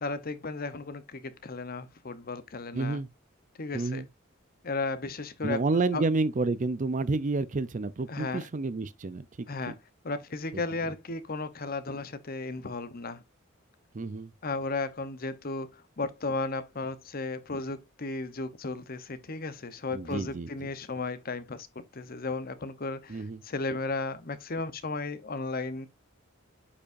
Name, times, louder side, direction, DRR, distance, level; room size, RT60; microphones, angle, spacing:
voice 1, 0.0-3.0 3.6-4.0 4.6-5.6 5.9-6.0 8.1-8.5 9.5-9.7 10.0-13.2 14.4-21.7 21.9-25.9, left 3 dB, 45° left, 0.9 m, -34 dB
voice 2, 2.7-3.1 3.7-4.1 5.4-9.7 13.9-14.3 19.9-20.7 23.1-23.4, right 3 dB, 40° right, 0.5 m, -30 dB
8.4 x 5.5 x 2.6 m
head